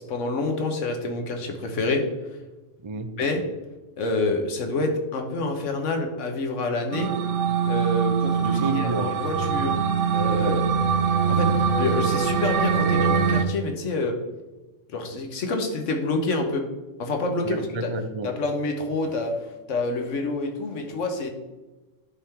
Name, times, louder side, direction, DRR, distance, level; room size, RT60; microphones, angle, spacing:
voice 1, 0.1-2.1 3.2-3.4 4.0-7.1 7.7-9.8 10.1-10.6 11.3-14.1 14.9-16.6 17.0-17.7 18.2-19.3 19.7-21.3, left 2 dB, 75° left, 4 dB, 1.4 m, -27 dB
voice 2, 2.8-3.1 8.4-9.1 10.4-10.6 17.4-18.3, right 3 dB, 45° right, 8 dB, 0.3 m, -30 dB
sound 1, 6.9-13.4, right 6 dB, 75° right, 1.0 m, -23 dB
10.5 x 3.7 x 4.4 m, 1.1 s
omnidirectional pair, 1.3 m